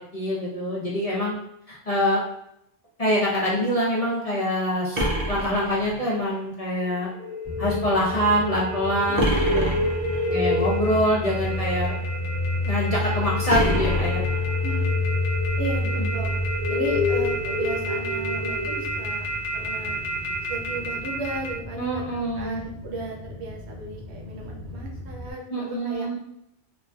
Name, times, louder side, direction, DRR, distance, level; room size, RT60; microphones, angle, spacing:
voice 1, 0.1-1.3 1.7-2.2 3.0-7.1 7.6-9.7 10.3-12.0 12.6-14.2 16.0-16.1 21.8-22.6 25.5-26.2, equal, 40° left, -6 dB, 0.7 m, -25 dB
sound 1, 4.9-6.3 9.2-10.3 13.5-14.8, equal, 45° right, 0.6 m, -26 dB
sound 2, 6.8-21.5, left 1 dB, 80° left, 1.0 m, -29 dB
sound 3, 7.4-25.3, left 2 dB, ahead, 0.9 m, -31 dB
voice 2, 15.6-16.3 16.7-19.3 19.5-20.0 20.5-26.1, right 2 dB, 70° right, 0 dB, 0.9 m, -35 dB
3.1 x 2.6 x 2.3 m, 0.79 s
omnidirectional pair, 1.2 m